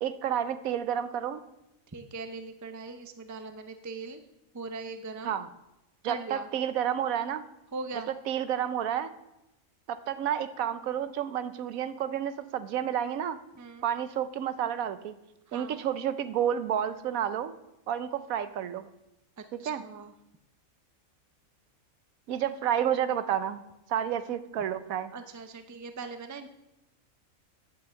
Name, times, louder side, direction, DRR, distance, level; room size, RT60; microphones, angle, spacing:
voice 1, 0.0-1.4 5.2-5.5 6.0-7.4 8.3-9.1 9.9-13.4 13.8-15.2 15.5-17.5 17.9-18.9 19.5-19.8 22.3-23.6 23.9-25.1, right 9 dB, 85° right, 12 dB, 1.1 m, -30 dB
voice 2, 1.9-4.2 4.5-5.4 6.0-6.5 7.7-8.1 13.6-13.9 15.5-15.8 19.4-20.1 25.1-26.5, right 4 dB, 25° right, 8 dB, 0.4 m, -40 dB
9.9 x 5.8 x 7.7 m, 0.93 s
omnidirectional pair, 1.4 m